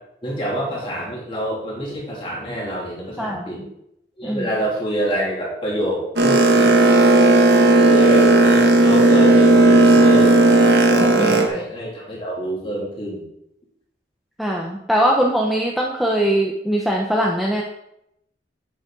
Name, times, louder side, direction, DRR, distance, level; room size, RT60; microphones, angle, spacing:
voice 1, 0.2-3.6 4.2-6.8 7.8-10.4 10.9-13.3, equal, 30° left, -4 dB, 2.6 m, -26 dB
voice 2, 3.2-3.7 4.2-4.5 11.1-11.4 14.4-17.6, right 1 dB, ahead, -2 dB, 0.6 m, -21 dB
Boat Water vehicle, 6.2-11.5, right 2 dB, 80° right, 1.1 m, -13 dB
8.0 x 7.5 x 3.7 m, 0.80 s
head